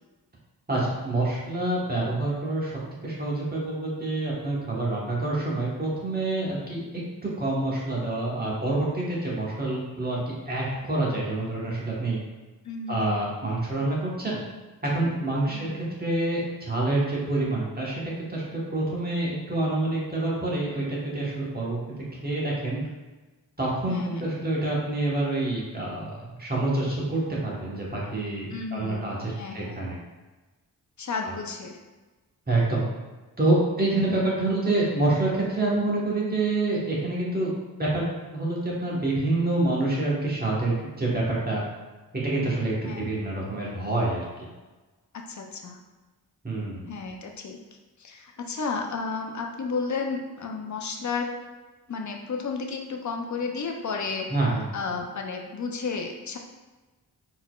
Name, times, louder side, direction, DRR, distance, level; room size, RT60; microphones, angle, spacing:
voice 1, 0.7-2.7 3.0-10.2 10.5-12.2 12.9-14.4 14.8-15.7 16.0-21.8 22.2-22.8 23.6-30.0 31.2-31.3 32.5-32.8 33.4-37.5 37.8-41.6 42.2-44.5 46.4-46.9 54.3-54.7, right 2 dB, 25° right, -5 dB, 1.3 m, -27 dB
voice 2, 12.6-13.2 15.5-15.7 23.9-24.3 28.5-29.1 29.4-29.8 31.0-31.8 34.1-34.3 42.9-43.1 45.3-45.8 46.9-47.6 48.0-51.3 51.9-54.3 54.7-56.4, left 4 dB, 50° left, 2 dB, 0.6 m, -32 dB
4.3 x 4.0 x 2.3 m, 1.2 s
wide cardioid pair, 95°, 38 cm